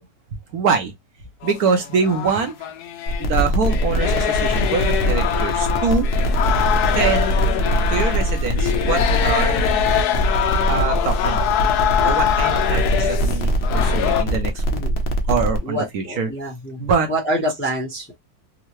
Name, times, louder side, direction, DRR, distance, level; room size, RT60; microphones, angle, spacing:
voice 1, 0.5-0.9 1.4-2.5 3.2-6.1 6.9-7.4 7.9-9.6 10.7-11.4 12.0-14.6 15.3-16.3 16.8-17.1, right 5 dB, 70° right, 1.1 m, -24 dB
sound 1, 1.4-3.3 3.6-14.2, left 11 dB, 75° left, 1.1 m, -23 dB
sound 2, 3.1-15.6, equal, 55° left, 0.6 m, -22 dB
voice 2, 15.6-18.2, equal, 10° left, 0.7 m, -27 dB
3.7 x 2.1 x 3.0 m
omnidirectional pair, 1.8 m